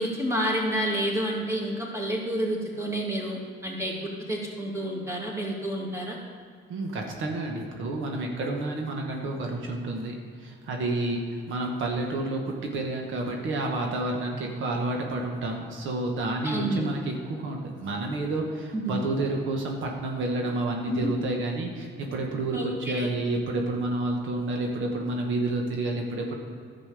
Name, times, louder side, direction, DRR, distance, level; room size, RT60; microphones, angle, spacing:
voice 1, 0.0-6.2 16.4-16.9 18.7-19.1 20.8-21.1 22.5-23.1, right 1 dB, 15° right, -2 dB, 2.5 m, -29 dB
voice 2, 6.7-10.1 10.4-11.2 11.5-26.4, right 2 dB, 75° right, 1 dB, 1.4 m, -29 dB
11.0 x 7.6 x 5.0 m, 2.2 s
cardioid pair, 90°, 20 cm